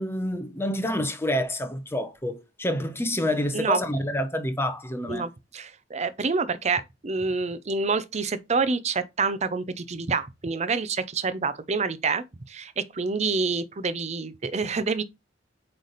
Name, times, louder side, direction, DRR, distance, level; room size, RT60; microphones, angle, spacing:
voice 1, 0.0-5.3, left 1 dB, 15° left, 0.8 m, -28 dB
voice 2, 5.1-15.0, right 4 dB, 40° right, 0.6 m, -27 dB
8.1 x 3.3 x 4.0 m
head